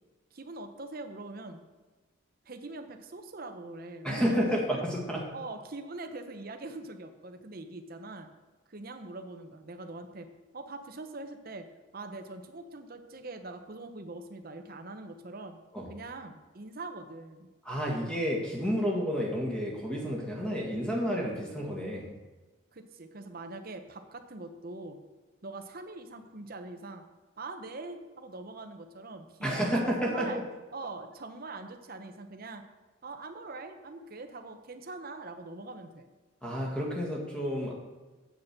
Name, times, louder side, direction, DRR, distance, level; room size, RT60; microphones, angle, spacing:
voice 1, 0.3-1.6 2.4-4.7 5.3-8.3 8.7-10.3 10.5-11.7 11.9-15.6 15.9-17.5 22.7-25.0 25.4-27.0 27.4-30.4 30.7-32.6 33.0-36.1, right 2 dB, 45° right, 7 dB, 0.8 m, -43 dB
voice 2, 4.0-5.2 15.7-15.9 17.6-22.1 29.4-30.4 36.4-37.7, equal, 5° left, -2 dB, 1.7 m, -30 dB
8.2 x 6.6 x 5.8 m, 1.2 s
head